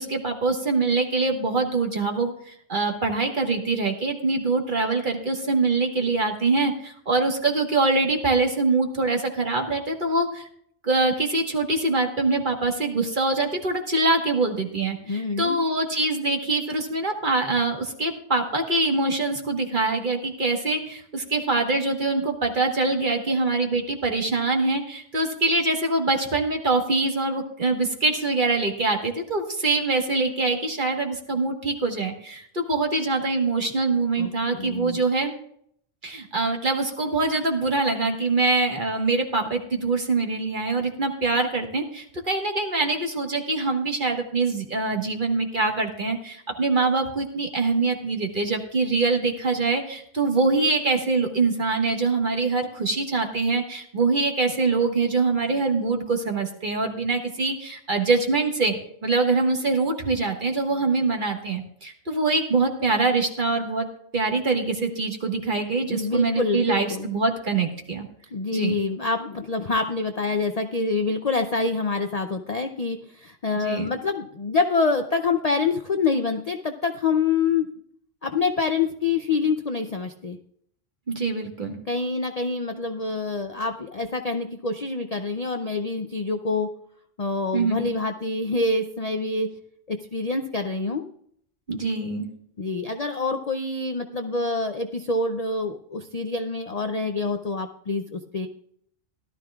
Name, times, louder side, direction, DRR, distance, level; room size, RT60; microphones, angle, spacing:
voice 1, 0.0-10.5 10.8-35.3 36.0-63.9 64.1-68.1 68.5-68.8 73.6-73.9 81.1-81.8 87.5-87.9 91.7-92.3, right 3 dB, 40° right, 3 dB, 1.5 m, -24 dB
voice 2, 15.1-15.6 34.2-35.0 65.9-67.1 68.3-77.7 78.2-80.4 81.9-86.7 87.2-89.5 89.9-91.1 92.6-98.5, left 4 dB, 45° left, 6 dB, 0.5 m, -26 dB
16.5 x 12.5 x 2.4 m, 0.66 s
omnidirectional pair, 1.3 m